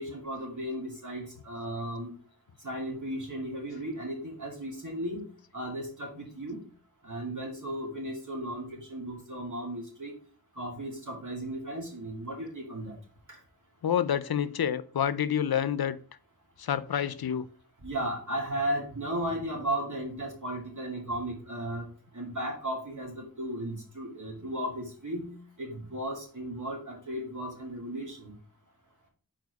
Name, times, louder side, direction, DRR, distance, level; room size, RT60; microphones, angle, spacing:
voice 1, 0.0-2.1 2.6-5.2 5.5-6.6 7.0-10.1 10.6-13.0 17.8-21.8 22.1-28.3, right 1 dB, 55° right, 2.3 m, -35 dB
voice 2, 13.8-16.0 16.6-17.5, left 9 dB, 80° left, 0.5 m, -28 dB
4.9 x 4.4 x 4.6 m
wide cardioid pair, 55°, 37 cm